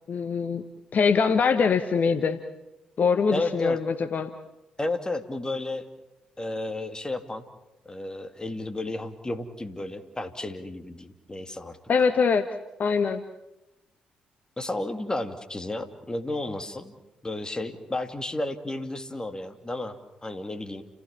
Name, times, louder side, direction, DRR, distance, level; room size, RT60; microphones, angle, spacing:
voice 1, 0.1-0.6 0.9-2.4 3.0-4.3 11.9-12.5 12.8-13.2, left 5 dB, 50° left, 9 dB, 1.2 m, -23 dB
voice 2, 3.3-3.8 4.8-5.9 6.4-7.4 7.8-11.8 14.6-16.9 17.2-20.8, left 2 dB, 20° left, 8 dB, 2.7 m, -32 dB
30.0 x 15.5 x 7.3 m, 0.97 s
hypercardioid pair, 40°, 4 cm